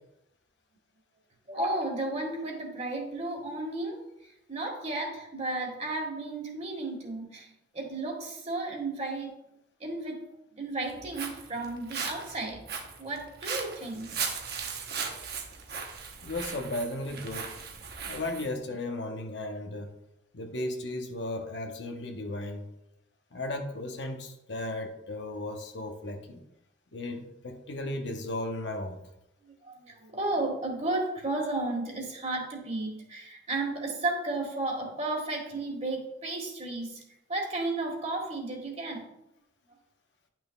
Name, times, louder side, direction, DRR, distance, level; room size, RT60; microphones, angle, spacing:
voice 1, 1.5-4.0 4.5-7.5 7.7-9.3 9.8-10.2 10.6-12.6 13.0-14.1 29.4-37.0 37.3-39.0, right 2 dB, 35° right, 1 dB, 1.7 m, -33 dB
Walk footsteps, 10.8-18.5, right 6 dB, 60° right, 1.0 m, -38 dB
voice 2, 16.2-17.5 18.0-19.9 20.3-22.7 23.3-26.4 26.9-29.0, left 1 dB, 65° left, 4 dB, 1.0 m, -35 dB
11.0 x 6.0 x 2.4 m, 0.85 s
head